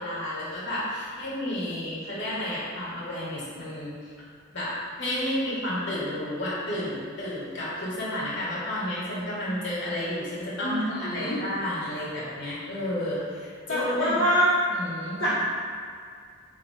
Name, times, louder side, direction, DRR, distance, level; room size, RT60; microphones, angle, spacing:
voice 1, 0.0-4.1 4.5-4.7 5.0-14.1 14.7-15.2, left 1 dB, 60° left, -9 dB, 1.4 m, -31 dB
voice 2, 10.6-11.4 13.7-14.5 15.2-15.4, equal, 75° left, -12 dB, 1.2 m, -25 dB
3.8 x 3.1 x 3.9 m, 2.2 s
head